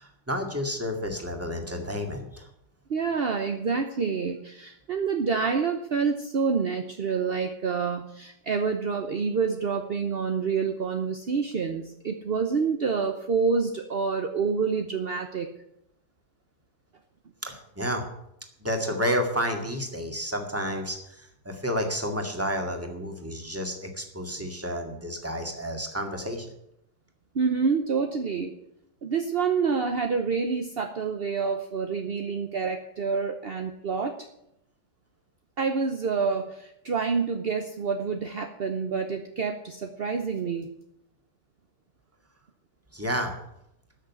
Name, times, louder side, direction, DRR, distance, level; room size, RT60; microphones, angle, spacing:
voice 1, 0.0-2.5 17.4-18.0 18.6-26.5 42.9-43.3, equal, 10° right, 3 dB, 1.9 m, -30 dB
voice 2, 2.9-15.5 24.4-24.5 27.3-28.5 29.0-34.1 35.6-40.7, right 5 dB, 50° right, 5 dB, 0.7 m, -27 dB
13.0 x 6.6 x 9.4 m, 0.79 s
omnidirectional pair, 2.0 m